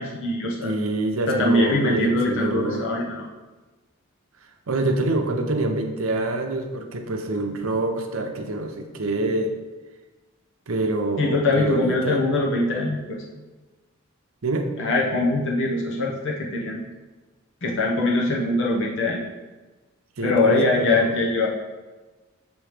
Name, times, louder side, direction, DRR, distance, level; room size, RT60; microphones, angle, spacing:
voice 1, 0.0-0.7 1.3-3.3 11.2-13.2 14.8-16.8 17.6-19.2 20.2-21.5, left 2 dB, 65° left, -2 dB, 0.9 m, -22 dB
voice 2, 0.6-2.9 4.7-9.5 10.7-12.2 14.4-14.7 20.2-21.1, right 2 dB, 75° right, 5 dB, 0.7 m, -26 dB
7.0 x 3.1 x 4.9 m, 1.2 s
head